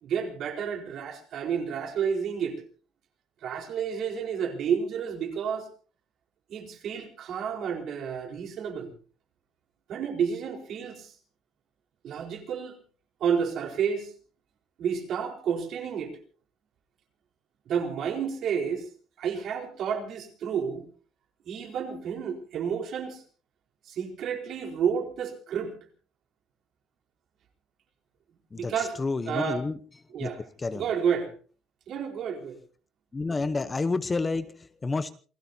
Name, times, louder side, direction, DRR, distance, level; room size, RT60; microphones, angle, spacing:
voice 1, 0.0-2.6 3.4-5.7 6.5-8.9 9.9-11.1 12.0-12.8 13.2-14.1 14.8-16.1 17.7-18.8 19.2-20.9 21.4-23.2 23.9-25.7 28.6-29.0 29.3-29.6 30.1-30.4 30.7-31.3 31.9-32.6, right 7 dB, 55° right, 4 dB, 4.4 m, -30 dB
voice 2, 28.5-29.8 30.2-30.3 30.6-30.9 33.1-35.1, left 3 dB, 20° left, 13 dB, 0.8 m, -29 dB
28.0 x 18.0 x 2.8 m, 0.39 s
cardioid pair, 150°, 0 cm